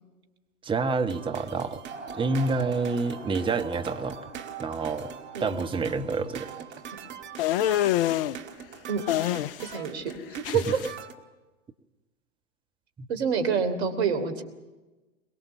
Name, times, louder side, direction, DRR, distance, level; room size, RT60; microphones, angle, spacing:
voice 1, 0.6-1.8 2.1-4.2 4.6-5.1 5.4-6.5, right 4 dB, 15° right, 7 dB, 1.2 m, -28 dB
sound 1, 1.1-11.1, right 9 dB, 30° right, 1.9 m, -43 dB
sound 2, 1.9-7.8, right 2 dB, 80° right, 4.2 m, -45 dB
sound 3, 7.4-8.4 9.1-9.8 10.1-10.9, left 13 dB, 45° left, 0.7 m, -26 dB
voice 2, 9.6-10.1 10.5-10.8 13.1-14.4, right 6 dB, 55° right, 8 dB, 3.2 m, -27 dB
23.0 x 21.5 x 7.2 m, 1.2 s
figure-of-eight pair, 100°, 37 cm